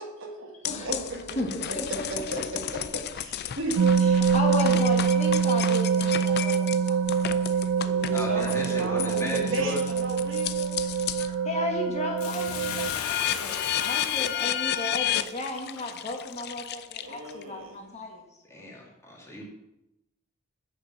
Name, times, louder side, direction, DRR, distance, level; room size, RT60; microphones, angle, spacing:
voice 1, 0.0-4.1 7.7-10.8 17.0-17.9, right 1 dB, 60° right, 2 dB, 1.6 m, -35 dB
sound 1, 0.7-11.4 11.8-17.4, left 11 dB, 50° left, 0.4 m, -33 dB
voice 2, 1.4-2.0 4.0-7.0 11.4-18.2, left 2 dB, 30° left, 2 dB, 1.4 m, -34 dB
sound 2, 3.8-12.9, right 6 dB, 85° right, 0.3 m, -25 dB
voice 3, 8.1-9.8 11.2-11.4 18.5-19.4, left 1 dB, 15° left, -2 dB, 2.2 m, -36 dB
Bathtub (filling or washing), 12.2-16.7 17.3-17.4, left 7 dB, 85° left, 0.9 m, -37 dB
8.0 x 6.6 x 6.0 m, 0.89 s
head